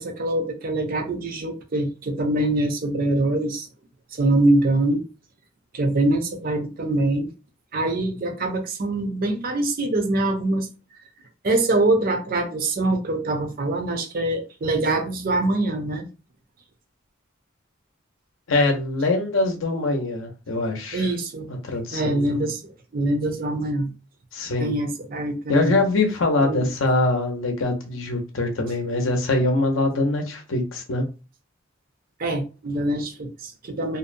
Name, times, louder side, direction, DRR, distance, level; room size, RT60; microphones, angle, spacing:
voice 1, 0.0-3.7 4.1-5.0 5.7-7.3 7.7-10.7 11.4-16.1 20.9-21.5 21.9-23.9 24.6-25.7 26.4-26.7 32.2-34.0, right 2 dB, 45° right, 0.5 m, -24 dB
voice 2, 18.5-21.1 21.6-22.4 24.3-24.7 25.5-31.0, left 2 dB, 70° left, 0.6 m, -23 dB
2.6 x 2.0 x 2.5 m
head